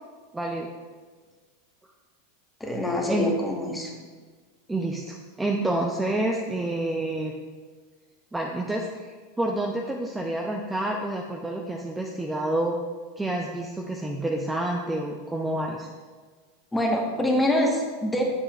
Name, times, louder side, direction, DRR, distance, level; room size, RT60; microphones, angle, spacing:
voice 1, 0.3-0.7 3.1-3.3 4.7-7.3 8.3-12.8 13.2-15.9, right 1 dB, 10° right, 0 dB, 0.5 m, -28 dB
voice 2, 2.6-3.9 16.7-18.2, left 1 dB, 10° left, 0 dB, 1.2 m, -25 dB
7.3 x 6.4 x 2.4 m, 1.5 s
hypercardioid pair, 95°, 0 cm